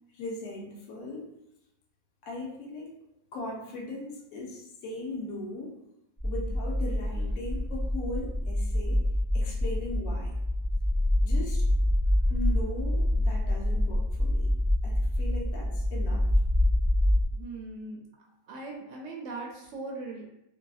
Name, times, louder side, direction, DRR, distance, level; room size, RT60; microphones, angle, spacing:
voice 1, 0.1-1.3 2.2-2.9 3.3-5.8 6.2-9.0 9.3-10.3 11.2-11.7 12.3-14.5 14.8-16.3, left 2 dB, 80° left, -1 dB, 1.1 m, -38 dB
sound 1, 6.2-17.3, left 1 dB, 20° left, 0.7 m, -26 dB
voice 2, 17.3-18.0 18.5-20.2, right 3 dB, 70° right, -2 dB, 0.8 m, -39 dB
2.7 x 2.5 x 2.3 m, 0.86 s
omnidirectional pair, 1.5 m